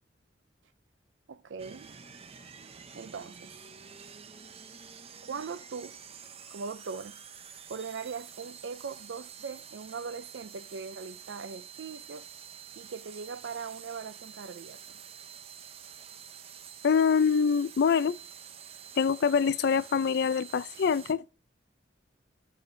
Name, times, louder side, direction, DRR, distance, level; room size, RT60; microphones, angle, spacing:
voice 1, 1.3-1.9 2.9-3.5 5.2-6.0 6.5-7.2 7.7-12.3 12.8-15.0, right 5 dB, 75° right, 0.5 m, -40 dB
sound 1, 1.6-21.1, right 8 dB, 35° right, 0.6 m, -48 dB
voice 2, 16.8-18.2 19.0-21.3, left 6 dB, 65° left, 0.4 m, -25 dB
12.0 x 7.1 x 2.7 m
head